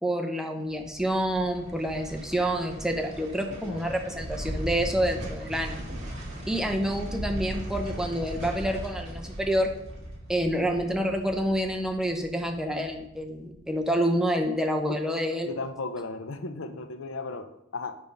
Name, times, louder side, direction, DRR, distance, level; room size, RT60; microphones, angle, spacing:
voice 1, 0.0-5.9 6.5-9.7 10.3-15.5, equal, 5° right, 2 dB, 0.7 m, -28 dB
sound 1, 0.7-13.9 14.2-14.3, right 1 dB, 35° right, 2.0 m, -38 dB
voice 2, 15.5-18.0, left 3 dB, 85° left, 9 dB, 0.7 m, -35 dB
7.0 x 5.3 x 5.3 m, 0.84 s
head